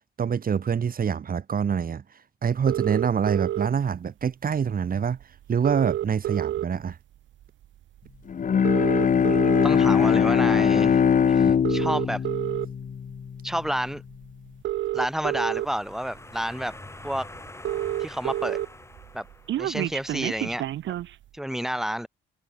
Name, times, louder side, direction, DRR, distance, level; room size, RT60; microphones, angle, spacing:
voice 1, 0.2-2.0 2.4-5.2 5.5-7.0, right 7 dB, 45° right, 2.8 m, -25 dB
sound 1, 2.7-3.7 4.9-5.0 5.2-5.3 5.5-6.9 7.4-7.7 8.5-9.7 10.4-10.6 11.5-12.7 13.9-14.0 14.5-15.7 16.3-16.4 16.7-16.8 17.1-17.2 17.4-18.7 19.0-21.1, right 12 dB, 70° right, 1.1 m, -28 dB
Bowed string instrument, 8.3-13.7, left 7 dB, 40° left, 1.1 m, -21 dB
voice 2, 9.3-11.0 11.3-12.2 13.4-14.0 14.9-16.8 17.0-17.3 18.0-18.6 19.1-19.3 19.6-20.7 21.3-22.1, equal, ahead, 3.6 m, -30 dB
sound 2, 15.2-19.9, left 2 dB, 15° left, 7.8 m, -45 dB
cardioid pair, 90°, 20 cm